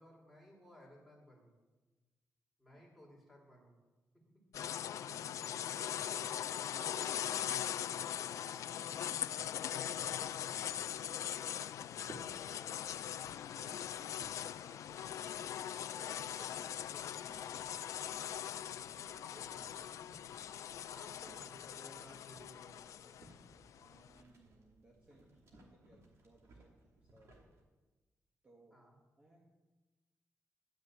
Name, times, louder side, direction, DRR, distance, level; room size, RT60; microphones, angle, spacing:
voice 1, 0.0-1.5 2.6-3.7 4.1-4.4 6.9-7.4 16.0-16.7 18.9-20.1 20.9-23.2 28.7-29.0, equal, ahead, -4 dB, 3.1 m, -59 dB
sound 1, 4.5-24.1, left 10 dB, 75° left, 0.3 m, -41 dB
voice 2, 4.9-5.6 5.9-7.1 7.6-7.8 9.8-11.6 12.0-15.0 15.6-16.2 16.8-17.6 20.4-20.7 23.7-27.5 28.4-28.8 29.2-29.4, right 1 dB, 25° right, -3 dB, 1.6 m, -63 dB
sound 2, 9.6-27.6, right 2 dB, 65° right, 2.8 m, -62 dB
12.0 x 6.4 x 8.8 m, 1.2 s
wide cardioid pair, 175°, 5 cm